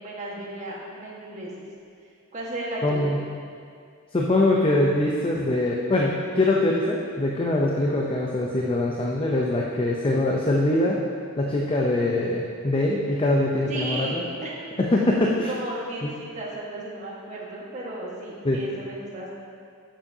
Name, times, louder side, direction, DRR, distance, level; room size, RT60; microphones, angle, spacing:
voice 1, 0.0-1.5 2.3-3.1 13.7-14.5 15.5-19.3, right 1 dB, 35° right, -5 dB, 1.5 m, -34 dB
voice 2, 2.8-3.2 4.1-11.0 11.4-14.2 14.9-15.5 16.0-16.1 18.4-18.6, left 1 dB, 25° left, -2 dB, 0.6 m, -23 dB
10.5 x 7.3 x 2.8 m, 2.3 s
head